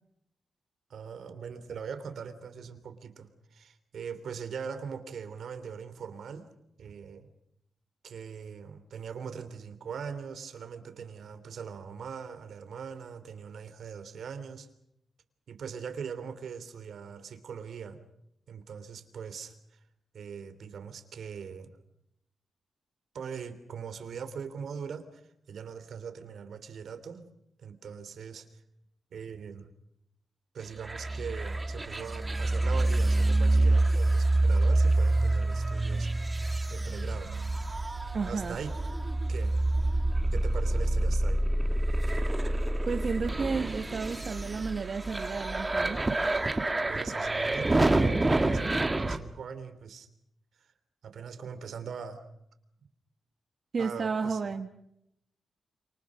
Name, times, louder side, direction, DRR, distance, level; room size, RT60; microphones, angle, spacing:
voice 1, 0.9-6.4 6.8-7.3 8.0-14.7 15.5-18.0 18.5-19.5 20.1-21.8 23.1-25.2 25.5-27.2 27.6-28.5 29.1-29.7 30.5-36.1 36.7-37.3 38.2-38.7 39.3-39.6 40.3-41.4 46.9-50.1 50.6-50.7 51.0-52.2 53.8-54.4, right 6 dB, 75° right, 10 dB, 3.1 m, -41 dB
sound 1, 30.8-49.2, right 2 dB, 20° right, 2.2 m, -27 dB
voice 2, 38.1-38.6 42.8-46.0 53.7-54.7, right 5 dB, 50° right, 6 dB, 1.5 m, -32 dB
28.5 x 27.0 x 6.4 m, 0.78 s
cardioid pair, 100°, 0 cm